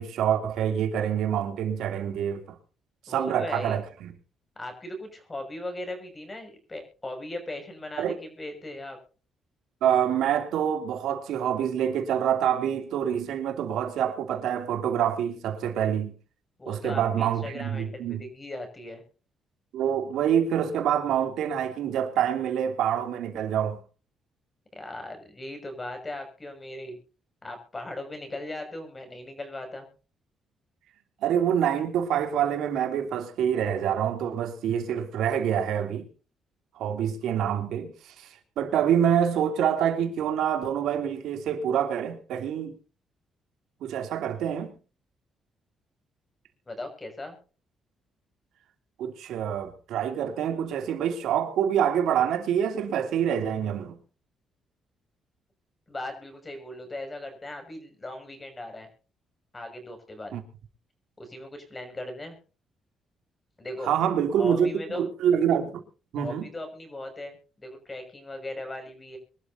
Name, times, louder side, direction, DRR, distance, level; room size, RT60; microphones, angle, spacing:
voice 1, 0.0-2.6 3.1-4.1 8.0-8.1 9.8-16.1 16.7-18.2 19.7-23.8 31.2-36.1 36.8-42.8 43.8-44.7 49.0-53.9 60.3-60.4 63.8-65.8 66.1-66.5, right 9 dB, 85° right, 3.0 m, -26 dB
voice 2, 3.1-3.8 4.6-9.0 16.6-19.0 24.7-27.0 27.4-29.9 46.7-47.4 55.9-58.9 59.5-60.3 61.2-62.4 63.6-63.9 64.4-65.0 66.2-69.2, left 1 dB, 20° left, 6.4 m, -38 dB
25.0 x 12.5 x 2.8 m
cardioid pair, 110°, 0 cm